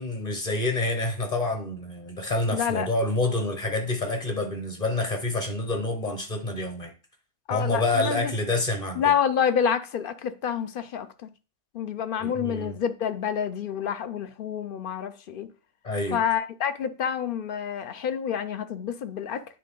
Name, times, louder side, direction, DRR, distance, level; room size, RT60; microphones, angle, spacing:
voice 1, 0.0-6.9 7.5-9.1 12.2-12.7 15.8-16.2, left 2 dB, 40° left, 1.2 m, -27 dB
voice 2, 2.5-2.9 7.5-8.3 9.0-11.3 11.7-15.5 16.1-19.4, left 8 dB, 60° left, 0.7 m, -28 dB
9.3 x 3.7 x 3.7 m
omnidirectional pair, 1.1 m